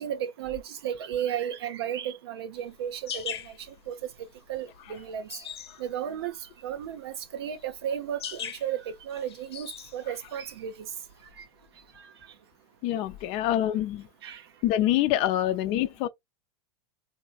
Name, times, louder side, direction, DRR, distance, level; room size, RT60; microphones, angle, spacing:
voice 1, 0.0-3.4 3.9-4.1 4.5-5.3 5.8-6.3 6.6-10.7 14.2-14.4, right 9 dB, 75° right, 0.8 m, -33 dB
sound 1, 2.5-11.3, left 8 dB, 90° left, 0.8 m, -41 dB
voice 2, 12.8-14.1 14.6-16.1, left 13 dB, 50° left, 0.6 m, -25 dB
3.2 x 2.8 x 2.4 m
hypercardioid pair, 110°, 13 cm